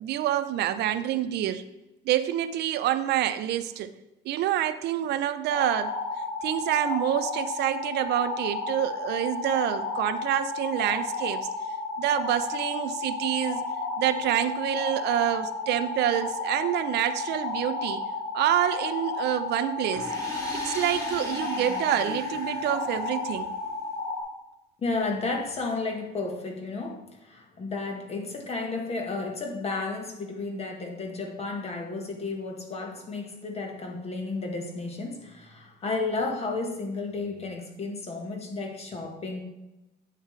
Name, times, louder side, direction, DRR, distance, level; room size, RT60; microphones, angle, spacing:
voice 1, 0.0-1.6 2.1-3.9 4.2-5.9 6.4-11.5 12.0-13.7 14.0-18.0 18.3-20.1 20.5-23.5, right 11 dB, 90° right, 12 dB, 0.5 m, -27 dB
sound 1, 5.5-24.2, left 3 dB, 75° left, 2.2 m, -32 dB
sound 2, 19.9-23.7, left 1 dB, 20° left, 2.1 m, -39 dB
voice 2, 24.8-39.4, left 3 dB, 40° left, 3 dB, 1.3 m, -32 dB
8.2 x 7.4 x 3.2 m, 0.98 s
cardioid pair, 125°, 17 cm